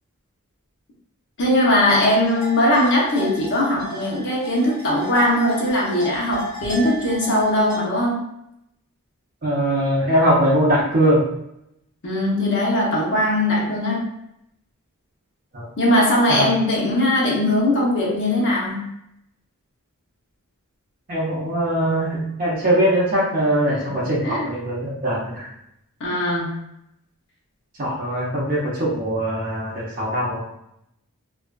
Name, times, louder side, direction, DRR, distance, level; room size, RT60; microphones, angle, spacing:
voice 1, 1.4-8.2 12.0-14.1 15.8-18.8 23.8-23.9 24.2-24.5 26.0-26.5, left 1 dB, 55° left, -4 dB, 0.7 m, -20 dB
sound 1, 1.8-7.8, left 1 dB, 20° left, 1.4 m, -34 dB
voice 2, 9.4-11.2 15.5-15.7 16.3-16.5 21.1-25.5 27.8-30.4, right 1 dB, 40° right, -7 dB, 0.6 m, -21 dB
2.4 x 2.3 x 2.2 m, 0.79 s
head